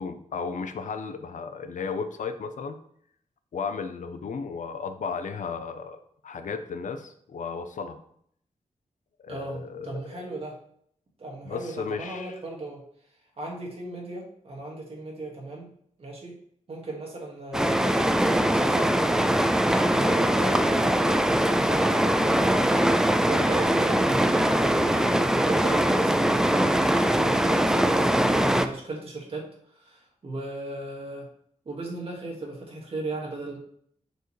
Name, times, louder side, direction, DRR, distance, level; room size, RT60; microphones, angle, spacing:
voice 1, 0.0-2.8 3.5-8.0 9.2-10.2 11.4-12.4, left 5 dB, 70° left, 9 dB, 0.6 m, -34 dB
voice 2, 9.3-10.6 11.2-12.8 13.4-15.7 16.0-16.3 16.7-19.5 19.9-31.3 31.7-33.6, right 2 dB, 45° right, -2 dB, 1.8 m, -36 dB
sound 1, 17.5-28.7, right 1 dB, 5° right, 0.3 m, -22 dB
6.6 x 4.7 x 3.2 m, 0.65 s
wide cardioid pair, 160°, 13 cm